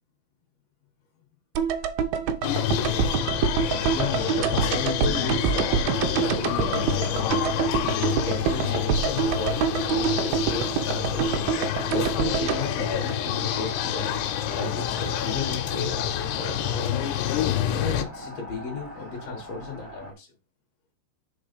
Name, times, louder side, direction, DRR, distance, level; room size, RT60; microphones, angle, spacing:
sound 1, 1.6-13.8 14.0-14.1, right 7 dB, 80° right, 2.3 m, -26 dB
sound 2, 2.4-18.0, left 11 dB, 85° left, 2.7 m, -28 dB
voice 1, 2.7-16.9 17.7-20.3, left 4 dB, 60° left, 1.7 m, -34 dB
sound 3, 7.1-20.1, left 2 dB, 20° right, 2.5 m, -41 dB
5.1 x 5.0 x 5.2 m
omnidirectional pair, 5.1 m